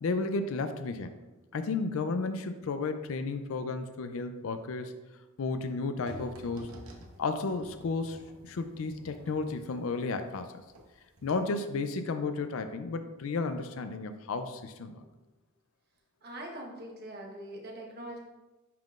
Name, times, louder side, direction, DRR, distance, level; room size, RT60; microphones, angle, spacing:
voice 1, 0.0-1.2 1.5-4.9 5.4-6.7 7.2-10.6 11.2-15.0, left 3 dB, 70° left, 9 dB, 0.4 m, -33 dB
sound 1, 6.0-10.9 11.2-11.3, right 1 dB, 80° right, 0.9 m, -50 dB
voice 2, 16.2-18.2, right 1 dB, 50° right, 0 dB, 1.1 m, -42 dB
10.5 x 3.7 x 2.5 m, 1.1 s
head